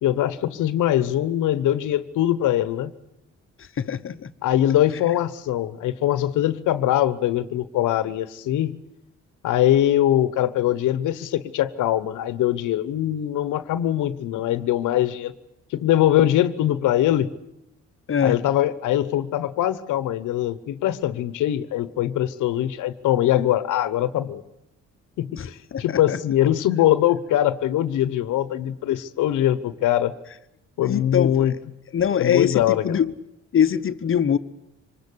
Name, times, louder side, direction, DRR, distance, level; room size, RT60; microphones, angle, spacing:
voice 1, 0.0-2.9 4.4-8.8 9.4-15.3 15.7-17.3 18.2-24.4 25.2-30.1 30.8-31.5 32.2-32.8, left 12 dB, 85° left, 15 dB, 1.1 m, -22 dB
voice 2, 3.6-4.3 18.1-18.4 25.4-26.2 30.8-31.6 31.9-33.1 33.5-34.4, left 8 dB, 45° left, 11 dB, 1.0 m, -23 dB
25.0 x 20.5 x 8.5 m, 0.86 s
cardioid pair, 90°, 30 cm